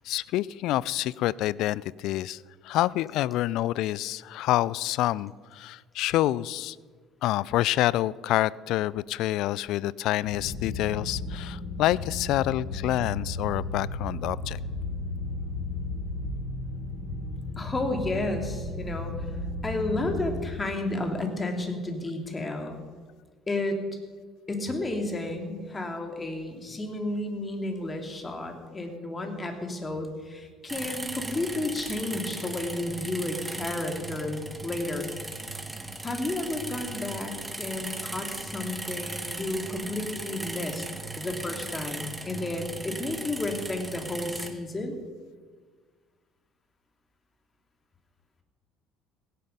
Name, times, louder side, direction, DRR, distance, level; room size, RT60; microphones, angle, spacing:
voice 1, 0.0-6.8 7.2-14.6, left 15 dB, 60° left, 22 dB, 0.3 m, -27 dB
sound 1, 10.2-20.4, left 2 dB, 85° left, 3.6 m, -34 dB
voice 2, 17.6-19.3 19.6-22.8 23.5-23.8 24.5-35.1 36.0-40.9 41.2-45.0, left 2 dB, 25° left, 4 dB, 2.7 m, -32 dB
sound 2, 30.7-44.5, right 2 dB, 10° right, 1.7 m, -37 dB
16.5 x 11.0 x 5.3 m, 1.5 s
hypercardioid pair, 60°, 0 cm